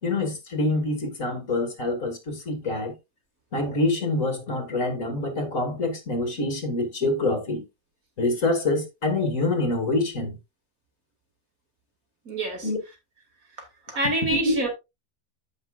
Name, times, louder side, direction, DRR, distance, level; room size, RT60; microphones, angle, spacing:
voice 1, 0.0-2.9 3.5-7.6 8.2-10.4 12.6-12.8 14.3-14.5, left 2 dB, 50° left, 2.5 m, -26 dB
voice 2, 12.2-12.7 13.6-14.7, right 1 dB, 55° right, 2.9 m, -27 dB
14.0 x 5.4 x 2.5 m
omnidirectional pair, 1.7 m